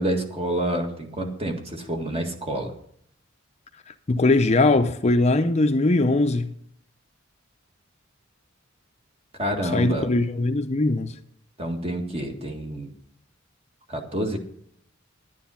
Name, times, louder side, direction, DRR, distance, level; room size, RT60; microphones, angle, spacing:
voice 1, 0.0-2.7 9.4-10.1 11.6-12.9 13.9-14.4, right 1 dB, 30° right, 1.8 m, -28 dB
voice 2, 4.1-6.5 9.7-11.1, left 2 dB, 35° left, 0.6 m, -20 dB
11.0 x 9.5 x 5.7 m
head